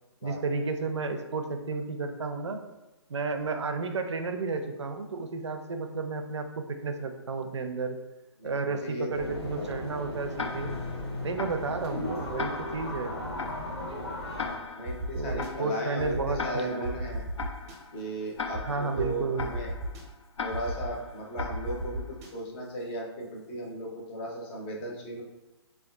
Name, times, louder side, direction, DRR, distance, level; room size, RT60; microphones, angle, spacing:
voice 1, 0.2-2.6 3.1-8.0 8.4-10.8 11.2-13.2 15.1-17.1 18.6-19.5, right 4 dB, 75° right, 6 dB, 0.4 m, -32 dB
voice 2, 8.4-9.7 14.8-17.2 17.9-19.7 20.4-25.2, right 1 dB, 25° left, -1 dB, 0.6 m, -36 dB
sound 1, 9.1-14.6, left 1 dB, 65° left, 0.8 m, -36 dB
Tick-tock, 10.4-22.2, left 4 dB, 85° left, 0.4 m, -40 dB
sound 2, 14.9-15.5 16.0-16.4 16.8-17.8 18.5-18.6 19.0-19.1 19.4-20.0 20.5-20.9 21.4-22.3, right 1 dB, 30° right, 0.6 m, -34 dB
3.6 x 2.3 x 2.3 m, 1.0 s
figure-of-eight pair, 135°, 15 cm